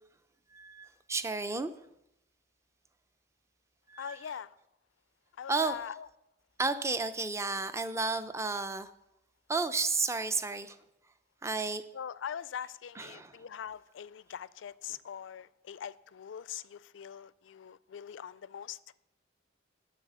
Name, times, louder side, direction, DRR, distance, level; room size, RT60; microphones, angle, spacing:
voice 1, 0.5-1.7 3.9-4.4 5.5-5.9 6.6-8.9 9.5-10.8 11.4-11.8 12.9-13.4, right 3 dB, 15° right, 0.5 m, -32 dB
voice 2, 4.0-4.6 5.4-6.1 11.9-18.8, left 8 dB, 85° left, 0.4 m, -42 dB
12.0 x 4.1 x 8.0 m
head